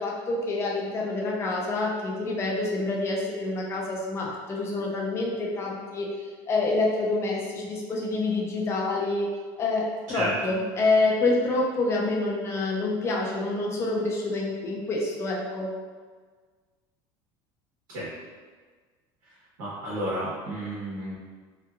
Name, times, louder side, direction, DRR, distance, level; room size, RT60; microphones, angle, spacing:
voice 1, 0.0-6.1 6.5-9.3 9.6-15.7, left 2 dB, 25° left, -3 dB, 0.4 m, -27 dB
voice 2, 19.6-21.2, right 1 dB, 80° right, -9 dB, 1.2 m, -31 dB
2.8 x 2.3 x 2.3 m, 1.5 s
cardioid pair, 145°, 11 cm